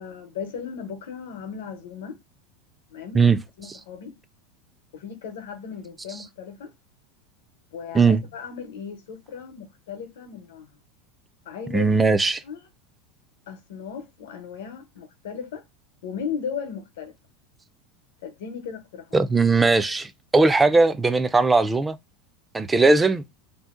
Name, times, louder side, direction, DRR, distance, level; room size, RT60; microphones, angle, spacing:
voice 1, 0.0-2.2 2.9-4.2 4.9-6.7 7.7-10.7 11.4-11.9 12.4-12.6 13.5-15.6 16.0-17.1 18.2-19.2, left 6 dB, 90° left, 0.8 m, -36 dB
voice 2, 11.7-12.4 19.1-22.0 22.5-23.2, right 3 dB, 10° right, 0.3 m, -19 dB
2.6 x 2.0 x 3.6 m
supercardioid pair, 145°, 0 cm